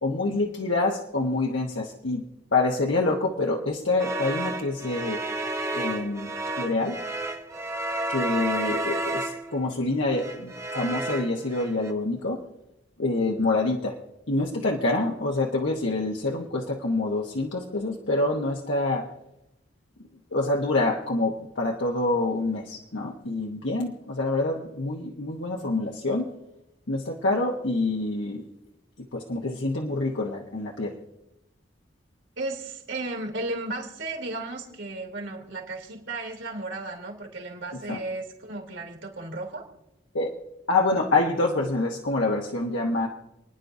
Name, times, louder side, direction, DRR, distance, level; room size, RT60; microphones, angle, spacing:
voice 1, 0.0-2.2 2.5-5.2 5.7-6.3 6.6-7.0 8.1-12.4 13.0-14.0 14.3-19.1 20.3-26.3 26.9-28.5 29.1-30.9 37.9-38.0 40.1-40.3 40.7-43.1, left 2 dB, 75° left, -1 dB, 1.2 m, -26 dB
sound 1, 4.0-9.6 10.1-11.9, right 2 dB, 15° right, 0.7 m, -31 dB
voice 2, 32.4-39.7, right 2 dB, 75° right, 1 dB, 2.9 m, -34 dB
29.0 x 10.0 x 2.7 m, 0.91 s
head